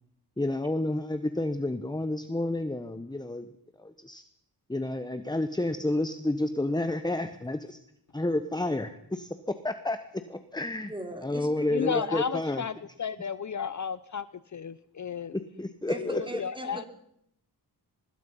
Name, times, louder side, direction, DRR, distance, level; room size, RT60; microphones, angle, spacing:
voice 1, 0.4-3.5 3.8-4.2 4.7-7.8 8.1-10.9 11.2-12.6 15.3-16.4, left 1 dB, 10° left, 10 dB, 1.3 m, -30 dB
voice 2, 10.9-12.1 15.9-16.9, right 1 dB, 10° right, 5 dB, 3.8 m, -39 dB
voice 3, 11.7-12.7 13.0-14.3 14.5-15.4 15.9-16.8, left 7 dB, 45° left, 16 dB, 0.7 m, -33 dB
24.5 x 21.0 x 5.7 m, 0.74 s
wide cardioid pair, 100°, 40 cm